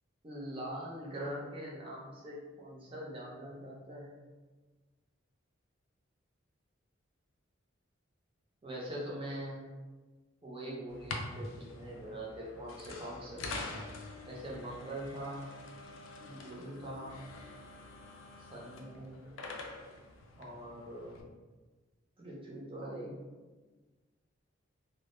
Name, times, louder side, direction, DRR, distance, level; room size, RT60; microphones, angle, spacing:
voice 1, 0.2-4.1 8.6-9.6 10.4-13.4 14.3-15.5 16.2-17.2 18.4-19.2 20.4-21.2 22.2-23.2, right 1 dB, 25° right, -4 dB, 0.5 m, -43 dB
sound 1, 10.9-21.2, left 2 dB, 85° left, 0.4 m, -46 dB
2.2 x 2.0 x 3.0 m, 1.3 s
head